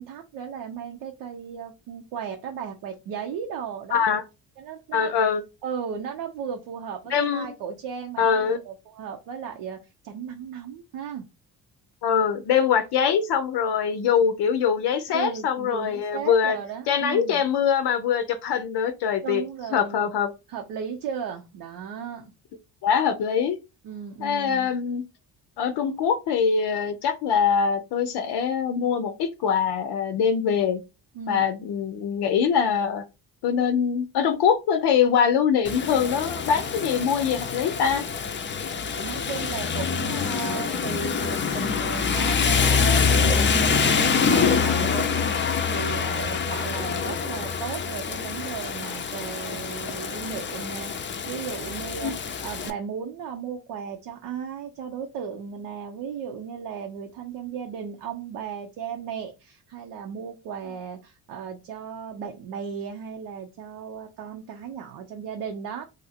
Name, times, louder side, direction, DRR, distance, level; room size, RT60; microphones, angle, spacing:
voice 1, 0.0-4.0 4.6-5.2 5.6-9.8 10.0-11.2 15.1-17.4 19.2-20.1 20.5-22.3 23.8-24.7 31.1-31.4 39.0-52.1 52.4-65.8, right 7 dB, 75° right, 0.7 m, -35 dB
voice 2, 3.9-4.2 4.9-5.4 7.1-7.5 8.2-8.6 12.0-16.6 16.9-19.4 19.7-20.3 22.8-23.6 24.2-25.0 25.6-30.8 31.3-33.0 33.4-38.1 52.0-52.1, left 7 dB, 70° left, 0.6 m, -23 dB
Rain, 35.6-52.7, left 6 dB, 25° left, 0.5 m, -25 dB
2.6 x 2.4 x 4.1 m
supercardioid pair, 55°, 43 cm